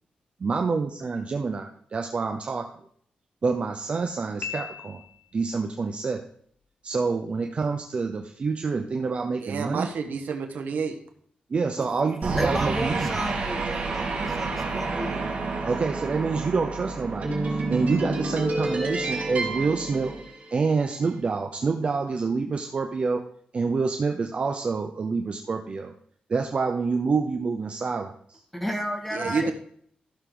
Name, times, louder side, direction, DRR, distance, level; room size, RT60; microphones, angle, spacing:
voice 1, 0.4-2.7 3.4-5.0 5.3-6.2 6.8-9.9 11.5-13.2 15.6-20.1 20.5-23.2 23.5-25.9 26.3-28.4 29.3-29.5, right 4 dB, 40° right, 5 dB, 0.8 m, -27 dB
Piano, 4.4-5.5, left 8 dB, 80° left, 1.0 m, -37 dB
voice 2, 9.4-11.0 29.1-29.5, right 5 dB, 80° right, 4 dB, 1.3 m, -29 dB
sound 1, 12.2-20.8, right 3 dB, 55° right, 3.2 m, -29 dB
voice 3, 12.4-15.3 28.5-29.5, equal, 5° left, 2 dB, 2.0 m, -31 dB
14.5 x 6.6 x 3.9 m, 0.63 s
wide cardioid pair, 125°, 3 cm